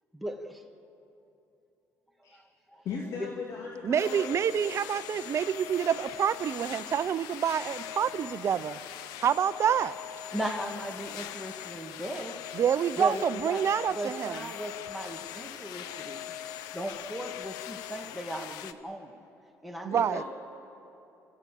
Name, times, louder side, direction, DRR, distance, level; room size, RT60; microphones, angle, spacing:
voice 1, 0.1-0.6 2.7-2.8 10.3-12.4 13.0-13.6 14.0-16.2 16.7-19.2 19.6-20.2, right 1 dB, ahead, 2 dB, 2.0 m, -37 dB
voice 2, 2.8-4.3 19.9-20.2, left 5 dB, 65° left, -2 dB, 2.8 m, -38 dB
voice 3, 3.8-8.8 9.2-9.9 12.5-14.5 19.8-20.2, right 8 dB, 45° right, 13 dB, 0.7 m, -27 dB
sound 1, 4.0-18.7, left 11 dB, 90° left, 0.8 m, -41 dB
30.0 x 14.5 x 7.7 m, 2.8 s
cardioid pair, 100°, 6 cm